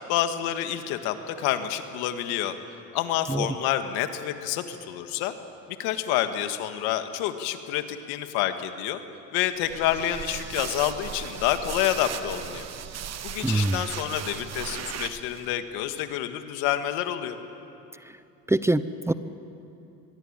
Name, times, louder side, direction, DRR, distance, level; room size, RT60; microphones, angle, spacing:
voice 1, 0.1-2.6 2.9-5.3 5.8-9.0 9.3-12.6 13.2-17.4, left 11 dB, 85° left, 8 dB, 1.8 m, -28 dB
sound 1, 9.6-15.5, right 9 dB, 45° right, 1.4 m, -37 dB
voice 2, 13.4-13.8 18.5-19.1, right 2 dB, 5° right, 13 dB, 0.7 m, -24 dB
24.5 x 22.0 x 8.9 m, 2.8 s
supercardioid pair, 105°, 36 cm